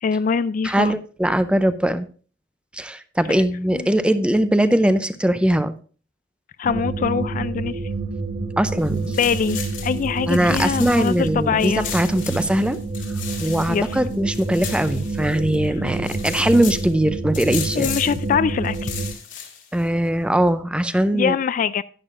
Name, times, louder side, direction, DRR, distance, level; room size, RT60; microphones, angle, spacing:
voice 1, 0.0-0.9 3.7-3.9 6.6-7.8 9.2-11.9 13.7-13.9 17.8-18.9 21.1-21.8, left 6 dB, 45° left, 15 dB, 0.3 m, -23 dB
voice 2, 0.6-2.1 2.7-5.7 8.6-9.2 10.3-12.8 13.4-17.9 19.7-21.4, right 1 dB, 5° right, 12 dB, 0.5 m, -20 dB
sound 1, 6.6-19.1, right 3 dB, 60° right, 1.2 m, -28 dB
sound 2, 8.8-11.3 11.6-15.6 15.9-16.9 17.3-18.3 18.6-19.8, left 8 dB, 85° left, 2.2 m, -35 dB
11.0 x 10.5 x 2.5 m, 0.39 s
head